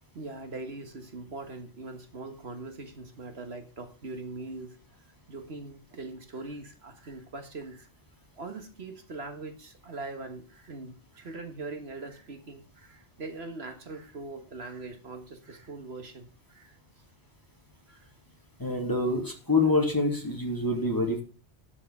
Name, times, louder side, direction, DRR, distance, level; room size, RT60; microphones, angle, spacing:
voice 1, 0.1-4.8 5.3-7.9 8.4-16.8 17.9-18.1, right 3 dB, 65° right, 6 dB, 1.7 m, -41 dB
voice 2, 18.6-21.2, left 2 dB, 20° left, 1 dB, 2.7 m, -26 dB
11.0 x 5.9 x 7.1 m, 0.36 s
omnidirectional pair, 1.2 m